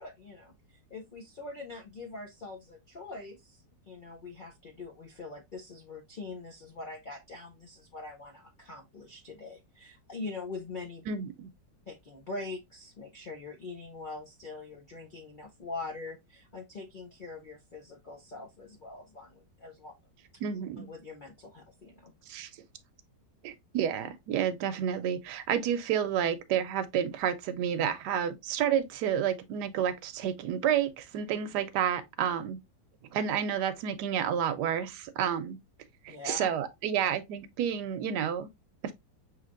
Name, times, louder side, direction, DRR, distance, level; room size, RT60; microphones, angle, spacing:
voice 1, 0.0-11.1 11.9-19.9 20.8-22.1 36.1-36.5, left 3 dB, 70° left, 0.4 m, -43 dB
voice 2, 11.1-11.5 20.4-20.9 22.3-22.5 23.4-32.6 33.1-35.6 36.0-38.5 38.8-38.9, right 9 dB, 75° right, 1.2 m, -30 dB
5.7 x 3.2 x 2.5 m
omnidirectional pair, 1.9 m